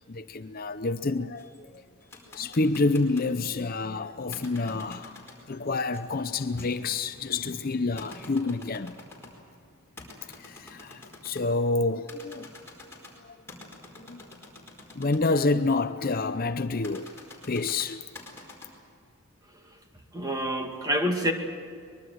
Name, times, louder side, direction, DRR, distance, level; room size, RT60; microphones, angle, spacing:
voice 1, 0.1-1.8 2.3-9.0 10.3-12.5 13.2-13.4 13.9-14.2 15.0-17.1 17.5-18.0, left 3 dB, 40° left, 0.6 m, -28 dB
sound 1, 1.4-3.4 4.3-9.5 10.0-11.5 12.0-15.4 16.8-18.7, left 2 dB, 10° left, 4.7 m, -48 dB
voice 2, 20.1-21.3, equal, 15° right, 2.2 m, -27 dB
23.5 x 22.0 x 7.9 m
head